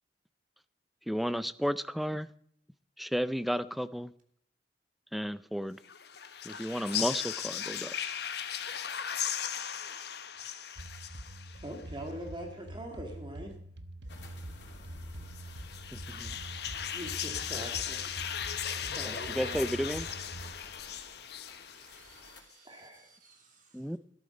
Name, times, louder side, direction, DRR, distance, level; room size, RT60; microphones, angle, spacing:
voice 1, 1.1-2.3 3.0-4.1 5.1-5.8 6.4-7.9 15.9-16.4 19.0-20.1 23.7-24.0, equal, ahead, 15 dB, 0.4 m, -33 dB
sound 1, 5.8-11.8 15.3-22.3, left 9 dB, 65° left, 1.1 m, -37 dB
sound 2, 10.8-20.5, right 1 dB, 70° right, 1.2 m, -45 dB
voice 2, 11.5-13.5 16.9-18.0 18.8-19.6 22.7-23.1, right 1 dB, 25° right, 3 dB, 2.0 m, -42 dB
sound 3, 14.1-22.4, left 3 dB, 80° left, 3.2 m, -52 dB
voice 3, 21.7-23.9, right 5 dB, 50° right, 3 dB, 3.2 m, -62 dB
13.0 x 12.0 x 5.3 m, 0.65 s
head